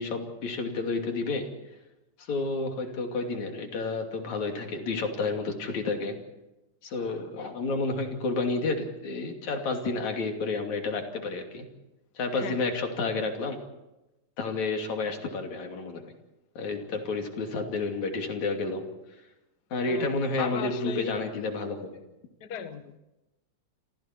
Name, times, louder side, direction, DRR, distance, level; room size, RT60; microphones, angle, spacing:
voice 1, 0.0-1.5 2.3-6.2 6.8-11.7 12.2-13.6 14.4-16.0 16.6-18.8 19.7-22.0, left 3 dB, 70° left, 3 dB, 4.1 m, -30 dB
voice 2, 12.3-12.7 19.9-20.1 20.4-21.1 22.4-23.0, left 8 dB, 45° left, 9 dB, 1.4 m, -37 dB
29.0 x 26.0 x 4.6 m, 0.98 s
omnidirectional pair, 3.4 m